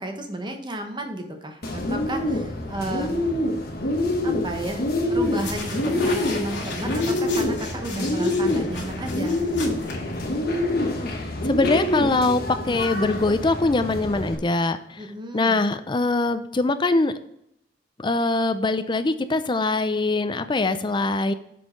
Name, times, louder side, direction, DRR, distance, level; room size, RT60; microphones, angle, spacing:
voice 1, 0.0-3.1 4.2-9.7 15.0-15.6, right 1 dB, 25° right, 4 dB, 1.1 m, -33 dB
Bird, 1.6-14.4, left 1 dB, 60° left, 1.2 m, -26 dB
sound 1, 5.2-10.6, left 3 dB, 80° left, 2.5 m, -36 dB
voice 2, 11.4-15.0 15.3-17.1 18.0-21.3, left 2 dB, 25° left, 10 dB, 0.5 m, -23 dB
7.5 x 4.4 x 5.1 m, 0.76 s
head